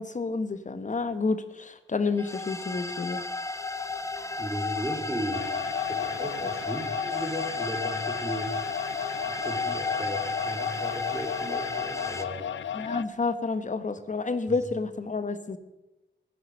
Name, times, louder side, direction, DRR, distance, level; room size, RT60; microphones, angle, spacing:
voice 1, 0.0-3.2 12.7-15.6, left 4 dB, 40° left, 11 dB, 1.3 m, -29 dB
sound 1, 2.2-12.2, left 3 dB, 15° left, 1.0 m, -33 dB
voice 2, 4.4-5.5 5.9-8.5 9.1-12.5 14.5-14.6, right 1 dB, 15° right, 3 dB, 3.1 m, -36 dB
sound 2, 5.3-13.0, left 9 dB, 80° left, 0.5 m, -34 dB
16.0 x 9.8 x 6.4 m, 0.97 s
wide cardioid pair, 100°, 20 cm